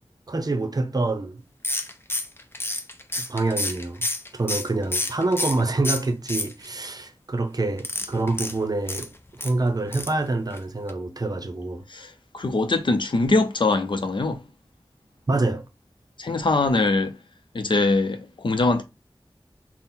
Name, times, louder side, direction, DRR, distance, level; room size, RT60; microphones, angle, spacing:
voice 1, 0.3-1.4 3.2-4.0 4.3-9.1 9.4-11.8 15.3-15.6, right 2 dB, 45° right, 0.6 m, -26 dB
sound 1, 1.6-5.6 5.8-6.9 7.8-9.5 9.9-10.2 10.5-10.6 10.9-11.0, left 2 dB, 25° left, 0.5 m, -29 dB
voice 2, 11.9-14.4 16.2-17.1 17.5-18.8, left 3 dB, 70° left, 0.6 m, -22 dB
4.2 x 2.1 x 3.7 m
wide cardioid pair, 65°, 9 cm